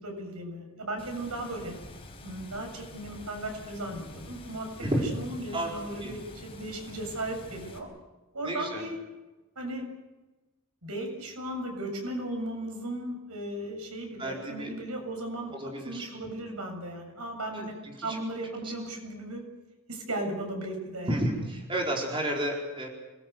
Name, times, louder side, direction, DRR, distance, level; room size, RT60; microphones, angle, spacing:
voice 1, 0.0-1.7 2.2-4.7 5.1-7.9 8.3-9.0 9.6-9.8 10.8-15.5 15.8-17.7 18.0-19.4 19.9-21.2, right 1 dB, 85° right, 3 dB, 7.4 m, -36 dB
Water, 1.0-7.8, left 1 dB, 25° left, 4.7 m, -47 dB
voice 2, 4.8-5.1 5.5-5.7 6.0-6.1 8.4-8.8 14.2-14.8 15.5-16.1 17.5-18.2 18.6-18.7 21.1-22.9, right 1 dB, 25° right, 0 dB, 4.5 m, -31 dB
27.0 x 21.0 x 8.1 m, 1.1 s
head